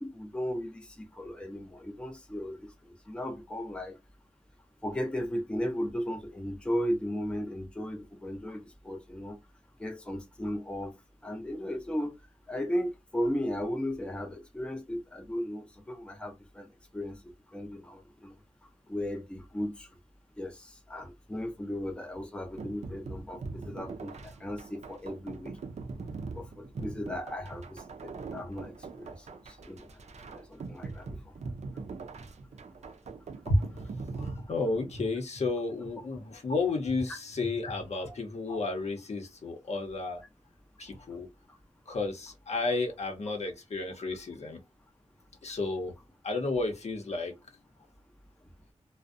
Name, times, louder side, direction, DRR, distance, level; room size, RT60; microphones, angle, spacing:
voice 1, 0.0-4.0 4.8-9.4 9.8-10.9 11.2-12.2 12.5-16.7 16.9-17.2 17.5-18.3 18.9-19.9 20.4-25.6 26.3-29.9 30.3-31.2 37.9-38.2 41.9-42.0, equal, 10° left, 0.5 m, -36 dB
sound 1, 22.6-35.1, right 4 dB, 70° right, 0.4 m, -42 dB
voice 2, 33.5-33.9 34.1-40.2 40.8-41.3 41.9-44.6 45.4-45.9 46.2-47.3, left 3 dB, 70° left, 0.7 m, -32 dB
2.5 x 2.0 x 2.5 m
wide cardioid pair, 110°, 12 cm